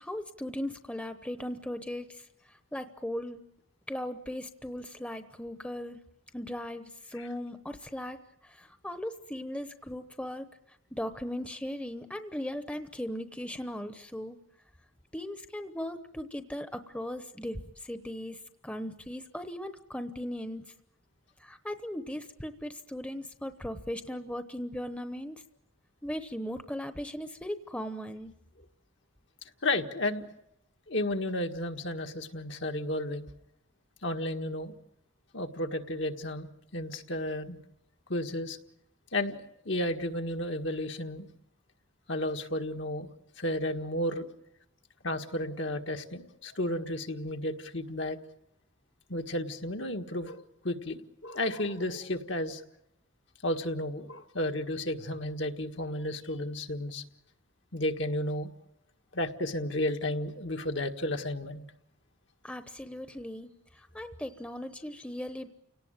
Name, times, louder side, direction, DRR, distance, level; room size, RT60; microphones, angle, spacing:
voice 1, 0.0-3.4 3.9-6.0 6.3-10.5 10.9-14.4 15.1-20.6 21.4-25.4 26.0-28.3 62.4-65.5, left 1 dB, 5° left, 9 dB, 0.9 m, -38 dB
voice 2, 29.6-30.2 30.9-33.3 34.0-34.7 35.3-37.6 38.1-38.6 39.1-41.3 42.1-43.1 43.4-44.3 45.0-48.2 49.1-52.6 53.4-57.0 57.7-58.5 59.1-61.6, left 1 dB, 65° left, 4 dB, 1.7 m, -33 dB
30.0 x 18.0 x 8.9 m, 0.83 s
head